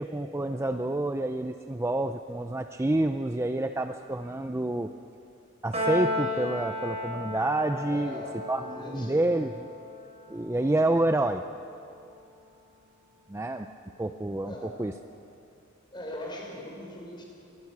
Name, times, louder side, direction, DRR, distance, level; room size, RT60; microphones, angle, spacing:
voice 1, 0.0-4.9 5.6-8.2 8.5-8.6 8.9-9.7 10.3-11.4 13.3-13.7 14.0-14.9, right 2 dB, 15° right, 7 dB, 0.5 m, -28 dB
Piano, 5.7-12.2, left 2 dB, 30° right, 4.9 m, -35 dB
voice 2, 7.9-9.2 14.4-14.8 15.9-17.2, left 1 dB, 20° left, -1 dB, 4.8 m, -40 dB
25.0 x 20.5 x 6.1 m, 2.7 s
head